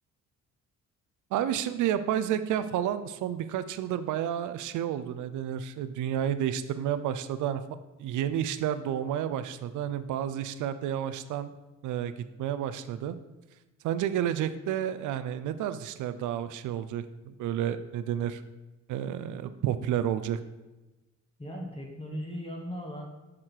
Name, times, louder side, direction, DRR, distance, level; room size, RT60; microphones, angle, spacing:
voice 1, 1.3-7.6 8.0-11.5 11.8-12.1 12.4-13.2 13.8-18.4 18.9-20.4, right 10 dB, 80° right, 12 dB, 0.5 m, -30 dB
voice 2, 21.4-23.0, equal, 20° left, -1 dB, 1.6 m, -37 dB
7.3 x 5.0 x 4.6 m, 1.1 s
cardioid pair, 90°, 30 cm